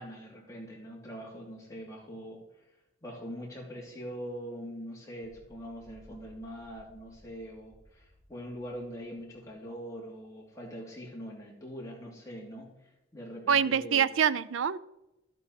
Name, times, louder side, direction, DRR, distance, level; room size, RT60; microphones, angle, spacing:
voice 1, 0.0-2.4 3.0-14.1, equal, 15° left, -3 dB, 2.8 m, -43 dB
sound 1, 5.2-9.8, equal, 65° right, 1.4 m, -59 dB
voice 2, 13.5-14.8, right 7 dB, 80° right, 16 dB, 0.4 m, -25 dB
13.0 x 8.2 x 4.1 m, 0.94 s
head